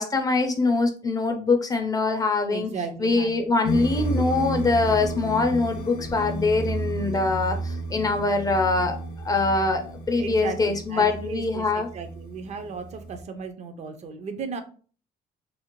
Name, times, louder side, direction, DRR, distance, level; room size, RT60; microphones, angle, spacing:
voice 1, 0.0-2.7 3.0-9.0 9.2-11.9, left 3 dB, 20° left, 5 dB, 0.4 m, -23 dB
voice 2, 2.5-3.6 4.2-4.5 7.1-7.2 10.2-14.6, right 5 dB, 40° right, 8 dB, 0.4 m, -36 dB
sound 1, 3.6-13.2, right 1 dB, 80° left, 0.6 m, -32 dB
2.5 x 2.0 x 2.9 m, 0.41 s
cardioid pair, 110°, 17 cm